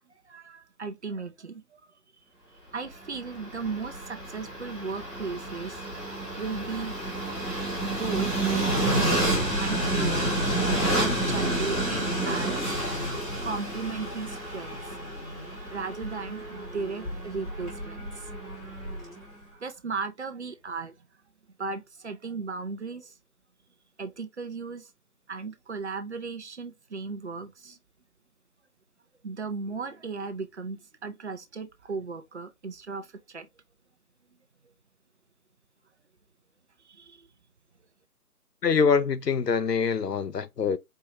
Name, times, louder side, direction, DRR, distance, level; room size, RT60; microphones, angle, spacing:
voice 1, 0.3-1.8 2.7-5.8 6.4-7.0 7.8-10.4 10.9-12.7 13.4-14.9 15.7-18.3 19.5-20.9 21.6-23.1 24.0-24.9 25.3-27.8 29.2-33.5 36.9-37.3, right 4 dB, 45° right, 0.7 m, -36 dB
Train, 3.1-19.2, right 1 dB, ahead, 1.5 m, -30 dB
voice 2, 38.6-40.8, left 5 dB, 90° left, 0.7 m, -24 dB
4.6 x 3.1 x 2.9 m
figure-of-eight pair, 155°, 47 cm